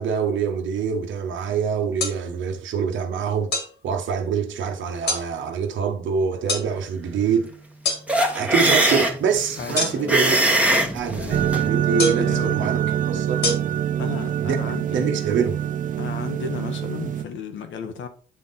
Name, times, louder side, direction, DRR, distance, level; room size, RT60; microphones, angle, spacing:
voice 1, 0.0-3.5 3.8-7.5 8.3-10.4 10.9-13.4 14.4-15.6, right 6 dB, 70° right, 1.1 m, -25 dB
sound 1, 2.0-2.2 3.5-3.7 5.1-5.3 6.5-6.7 7.8-8.0 9.7-10.2 12.0-12.3 13.4-13.5, left 2 dB, 55° left, 2.0 m, -24 dB
sound 2, 8.1-11.7, right 1 dB, 5° right, 1.2 m, -21 dB
voice 2, 9.6-11.4 12.1-12.7 14.0-15.1 16.0-18.1, left 6 dB, 75° left, 1.3 m, -34 dB
sound 3, 11.3-17.2, right 10 dB, 45° right, 0.4 m, -25 dB
8.5 x 3.7 x 4.1 m
cardioid pair, 90°, 20 cm